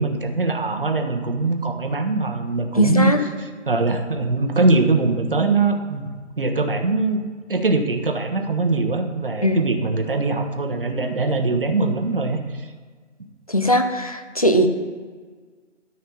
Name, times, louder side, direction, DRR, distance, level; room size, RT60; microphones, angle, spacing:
voice 1, 0.0-3.1 3.4-7.2 7.5-12.7, right 3 dB, 45° right, 6 dB, 1.2 m, -22 dB
voice 2, 2.7-3.2 9.4-9.6 13.5-14.7, equal, 30° left, 6 dB, 0.6 m, -19 dB
12.5 x 5.5 x 5.4 m, 1.5 s
figure-of-eight pair, 160°, 37 cm